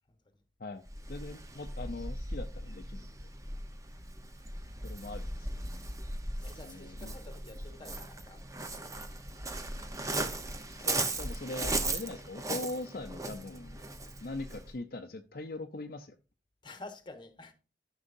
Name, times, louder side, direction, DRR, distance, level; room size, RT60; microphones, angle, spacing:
voice 1, 0.1-0.4 6.4-8.4 8.8-9.1 16.6-17.5, left 2 dB, 25° left, 1.1 m, -50 dB
Waves surf, 0.9-14.7, right 2 dB, 20° right, 0.8 m, -38 dB
voice 2, 1.1-3.3 4.8-5.7 6.6-7.1 10.7-13.8 14.2-16.1, left 2 dB, 55° left, 0.6 m, -41 dB
13.5 x 6.3 x 2.6 m
head